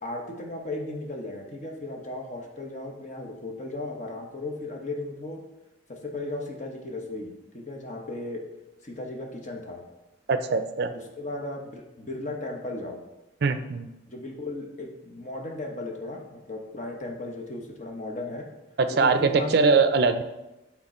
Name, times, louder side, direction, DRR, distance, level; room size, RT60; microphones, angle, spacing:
voice 1, 0.0-5.4 5.9-8.4 8.8-9.8 10.9-13.0 14.1-18.5 18.9-19.8, left 2 dB, 40° left, 1 dB, 0.9 m, -36 dB
voice 2, 10.3-10.9 13.4-13.9 18.8-20.2, right 4 dB, 55° right, 10 dB, 0.4 m, -22 dB
7.4 x 3.6 x 4.3 m, 1.0 s
head